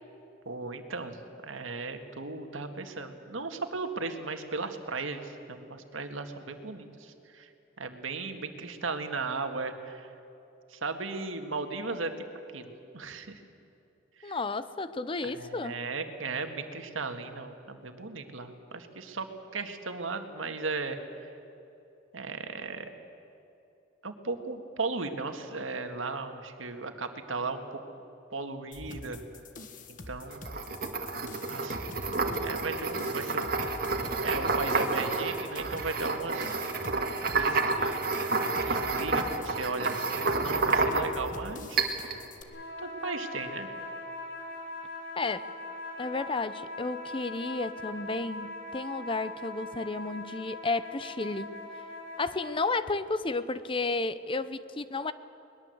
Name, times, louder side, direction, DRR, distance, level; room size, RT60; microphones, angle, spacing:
voice 1, 0.5-7.5 7.8-10.1 10.7-12.3 12.5-13.4 14.2-14.4 15.2-19.3 19.5-21.3 22.1-22.9 24.0-27.8 28.3-29.2 29.9-30.4 31.5-31.8 32.4-33.5 34.2-36.5 37.3-38.0 38.7-41.8 42.8-43.7, right 3 dB, 85° right, 6 dB, 1.9 m, -36 dB
voice 2, 14.2-15.8 45.2-45.5 46.0-51.6 52.2-55.1, left 3 dB, 25° left, 14 dB, 0.7 m, -32 dB
sound 1, 28.7-42.4, left 2 dB, 45° left, 1.6 m, -45 dB
sound 2, 30.3-41.3 41.8-42.2, right 3 dB, 50° right, 1.9 m, -29 dB
sound 3, 42.5-52.7, left 2 dB, 70° left, 5.4 m, -41 dB
22.0 x 20.5 x 8.0 m, 2.7 s
head